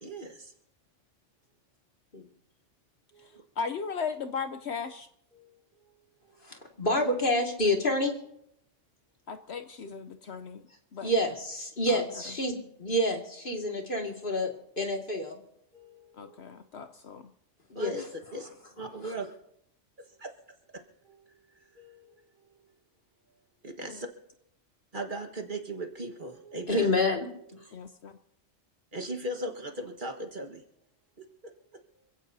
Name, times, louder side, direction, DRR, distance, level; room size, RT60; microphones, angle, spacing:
voice 1, 0.0-0.5 3.1-3.4 5.3-5.6 15.7-16.4 17.7-18.0 18.3-18.5 18.8-19.3 20.0-20.3 20.7-21.2 21.5-22.2 23.6-24.1 24.9-26.9 28.9-30.6 31.2-31.5, right 1 dB, 40° right, 4 dB, 1.6 m, -39 dB
voice 2, 3.2-5.1 9.3-10.6 10.9-11.1 11.9-12.0 16.1-17.3 23.8-24.0 27.7-28.2, left 5 dB, 65° left, 8 dB, 1.0 m, -37 dB
voice 3, 6.4-8.1 11.0-15.4 17.7-17.9 19.0-19.1 26.7-27.3, left 1 dB, 45° left, 1 dB, 2.3 m, -28 dB
27.0 x 16.5 x 2.7 m, 0.75 s
omnidirectional pair, 1.3 m